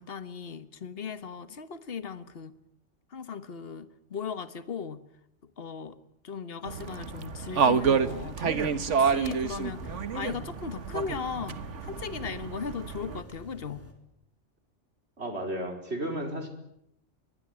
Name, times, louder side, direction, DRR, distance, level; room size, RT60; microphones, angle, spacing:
voice 1, 0.0-2.5 3.1-5.0 5.6-6.0 6.2-13.9, left 6 dB, 55° left, 1.6 m, -37 dB
sound 1, 6.6-13.2, right 6 dB, 80° right, 1.6 m, -29 dB
sound 2, 6.8-13.9, left 2 dB, 10° left, 4.4 m, -48 dB
voice 2, 15.2-16.5, right 1 dB, 60° right, 4.9 m, -33 dB
24.5 x 23.0 x 9.7 m
omnidirectional pair, 1.2 m